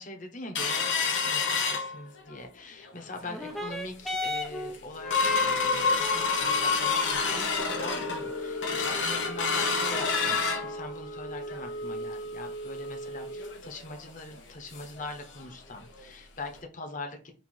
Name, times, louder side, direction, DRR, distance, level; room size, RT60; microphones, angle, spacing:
voice 1, 0.0-17.3, left 2 dB, 45° left, 4 dB, 1.1 m, -42 dB
sound 1, 0.5-2.4 2.8-2.9 3.3-3.6 4.1-4.2 4.5-15.1 15.4-15.5 15.8-16.0 16.5-16.6, left 4 dB, 85° left, 1.0 m, -29 dB
sound 2, 3.2-12.2 13.1-13.2, left 1 dB, ahead, 0.5 m, -39 dB
4.5 x 2.7 x 4.3 m, 0.32 s
head